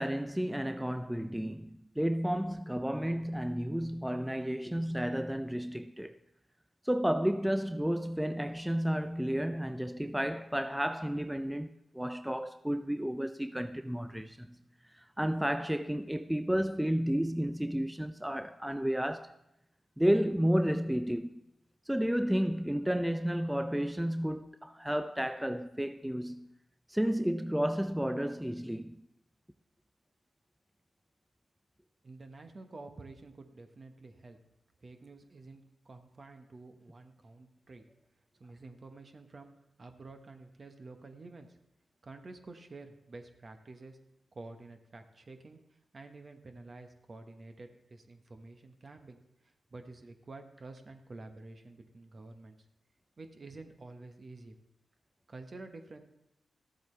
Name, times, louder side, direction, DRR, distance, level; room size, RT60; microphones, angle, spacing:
voice 1, 0.0-6.2 6.8-14.6 14.9-19.3 20.0-21.4 21.9-26.5 26.9-29.0, equal, 5° right, 0.4 m, -32 dB
voice 2, 32.0-34.4 34.8-37.8 38.4-39.5 39.8-41.6 42.0-44.0 44.3-45.6 45.9-49.2 49.7-52.6 53.2-54.5 55.3-56.0, right 3 dB, 50° right, 1.2 m, -49 dB
13.5 x 7.9 x 3.3 m
supercardioid pair, 40°, 0 cm